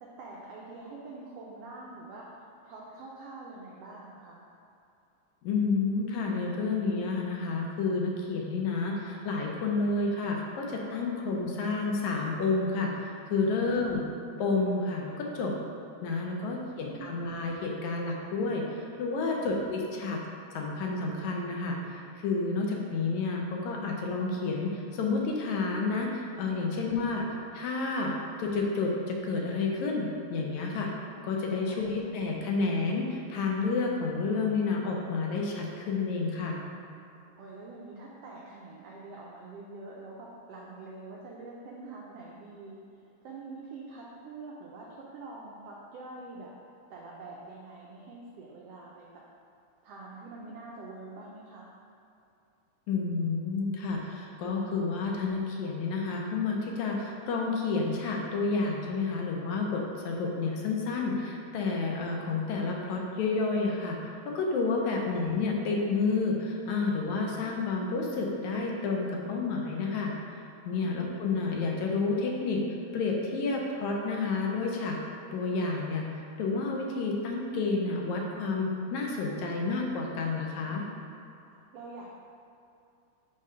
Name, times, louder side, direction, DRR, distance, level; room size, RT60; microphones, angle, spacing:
voice 1, 0.0-4.4 13.5-14.0 16.3-17.2 19.2-19.5 26.6-26.9 31.5-31.9 37.4-42.8 43.2-46.5 46.9-49.1 49.8-51.7 64.8-65.1 70.8-71.3 81.7-82.1, right 3 dB, 85° right, -4 dB, 1.3 m, -46 dB
voice 2, 5.4-14.0 14.4-15.5 16.0-20.2 20.5-27.3 27.5-30.9 31.2-36.6 52.9-64.0 64.3-70.1 70.7-72.6 72.9-75.0 75.3-76.1 76.4-80.9, left 3 dB, 75° left, -1 dB, 2.0 m, -30 dB
5.3 x 3.7 x 5.5 m, 2.6 s
omnidirectional pair, 3.5 m